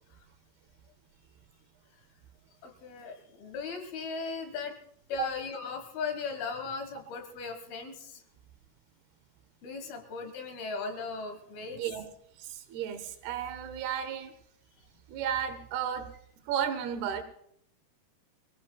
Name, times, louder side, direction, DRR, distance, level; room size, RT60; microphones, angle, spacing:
voice 1, 2.6-4.8 5.1-8.2 9.6-11.8, left 4 dB, 70° left, 6 dB, 3.4 m, -37 dB
voice 2, 11.7-12.1 12.4-14.3 15.1-16.1 16.5-17.2, right 8 dB, 75° right, 10 dB, 3.1 m, -33 dB
24.5 x 17.0 x 2.3 m, 0.70 s
omnidirectional pair, 4.7 m